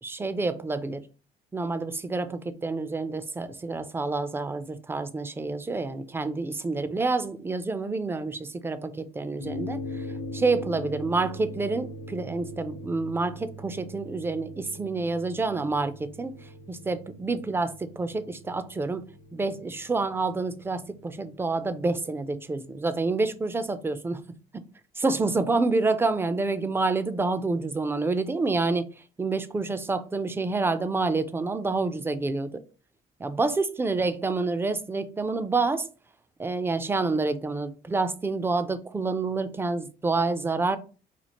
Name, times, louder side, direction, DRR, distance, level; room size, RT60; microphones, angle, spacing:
voice 1, 0.0-1.0 1.5-10.0 10.3-16.3 16.7-19.0 19.3-24.2 24.5-24.6 25.0-28.8 29.2-32.5 33.2-35.9 36.4-40.8, right 3 dB, 15° right, 0.4 m, -28 dB
sound 1, 9.4-23.9, left 1 dB, 80° left, 0.8 m, -42 dB
4.3 x 2.4 x 2.8 m
cardioid pair, 110°, 17 cm